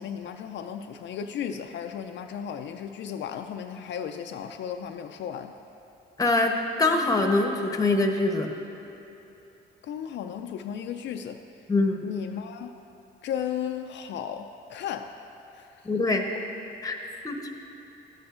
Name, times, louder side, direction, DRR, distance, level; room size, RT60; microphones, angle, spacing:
voice 1, 0.0-5.6 9.8-11.4 12.0-12.7 13.2-15.2 15.5-15.9 17.1-17.3, left 8 dB, 65° left, 6 dB, 0.4 m, -35 dB
voice 2, 6.2-8.5 11.7-12.1 15.8-16.2 16.8-17.0 17.2-17.4, left 2 dB, 15° left, 3 dB, 0.9 m, -24 dB
12.5 x 8.7 x 2.5 m, 3.0 s
cardioid pair, 90°, 20 cm